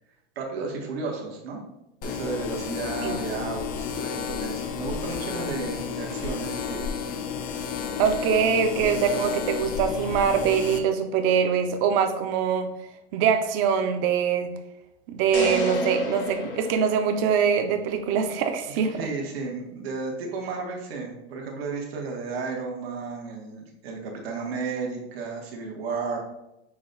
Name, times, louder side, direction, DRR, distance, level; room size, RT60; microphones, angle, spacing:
voice 1, 0.3-1.6 2.0-6.8 18.9-26.2, right 4 dB, 90° right, 0 dB, 1.3 m, -33 dB
sound 1, 2.0-10.8, left 6 dB, 30° left, 0.4 m, -32 dB
voice 2, 8.0-12.7 13.1-14.5 15.1-19.1, right 7 dB, 45° right, 7 dB, 0.6 m, -23 dB
sound 2, 15.3-17.6, left 1 dB, 65° left, 0.9 m, -31 dB
5.8 x 2.3 x 3.8 m, 0.89 s
supercardioid pair, 145°, 29 cm